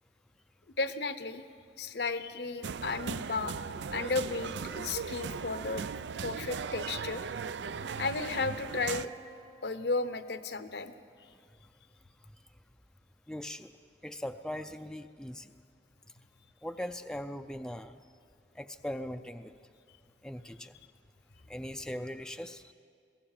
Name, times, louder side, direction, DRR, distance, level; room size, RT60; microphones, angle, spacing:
voice 1, 0.8-1.4 1.8-3.6 3.9-5.9 6.2-7.2 8.0-9.1 9.6-10.9, left 3 dB, 70° left, 11 dB, 0.9 m, -34 dB
sound 1, 2.6-9.1, right 6 dB, 85° right, 0.4 m, -38 dB
sound 2, 7.8-10.7, right 2 dB, 45° right, 2.2 m, -53 dB
voice 2, 13.3-13.7 14.0-15.5 16.6-18.0 18.6-19.5 20.2-20.7 21.5-22.7, equal, 5° left, 7 dB, 0.4 m, -40 dB
21.5 x 17.0 x 7.4 m, 2.2 s
head